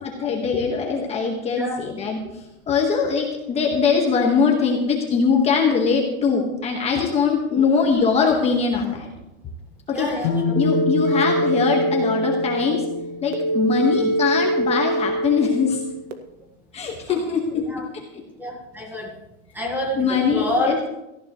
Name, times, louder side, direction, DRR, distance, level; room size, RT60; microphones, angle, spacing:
voice 1, 0.0-2.2 2.7-9.1 9.9-10.1 10.5-12.8 13.2-15.8 16.7-17.6 19.9-20.7, left 5 dB, 15° left, 0 dB, 1.5 m, -21 dB
voice 2, 9.9-10.5 14.0-14.1 17.1-17.2 17.5-17.8 18.4-19.2 19.5-20.9, left 1 dB, 5° right, 1 dB, 1.7 m, -28 dB
sound 1, 10.2-14.2, left 4 dB, 60° left, 2.4 m, -28 dB
sound 2, 10.6-16.1, right 1 dB, 85° right, 1.8 m, -24 dB
18.0 x 14.5 x 3.1 m, 0.91 s
supercardioid pair, 165°, 37 cm